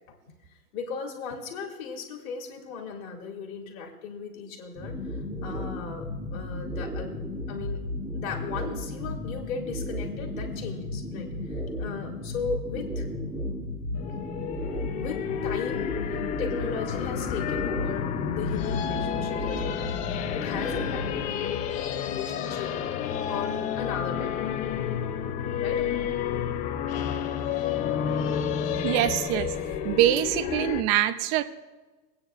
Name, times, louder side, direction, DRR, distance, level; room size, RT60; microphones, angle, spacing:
voice 1, 0.7-4.9 5.4-7.1 7.5-7.8 8.1-13.1 15.0-16.0 16.4-21.6 21.9-22.7 23.3-24.5 25.6-26.1, left 5 dB, 60° left, 2 dB, 2.4 m, -36 dB
sound 1, 4.7-21.2, left 1 dB, 10° right, 2.4 m, -34 dB
sound 2, 13.9-30.8, left 8 dB, 20° left, 0.4 m, -30 dB
voice 2, 28.8-29.5 29.8-31.4, right 13 dB, 35° right, 12 dB, 0.6 m, -24 dB
23.5 x 9.3 x 2.4 m, 1.3 s
hypercardioid pair, 115°, 46 cm